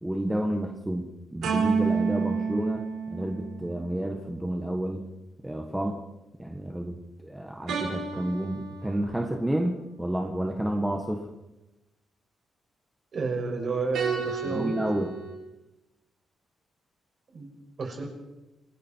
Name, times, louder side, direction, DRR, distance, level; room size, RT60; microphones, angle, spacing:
voice 1, 0.0-5.1 5.4-6.0 6.4-11.3 14.5-15.1, right 1 dB, 5° right, 2 dB, 1.6 m, -30 dB
sound 1, 1.4-4.0 7.7-9.5 13.9-15.3, right 5 dB, 75° right, 5.3 m, -30 dB
voice 2, 13.1-14.8 17.3-18.1, right 4 dB, 45° right, 1 dB, 6.6 m, -31 dB
29.0 x 19.0 x 4.7 m, 0.99 s
cardioid pair, 145°, 0 cm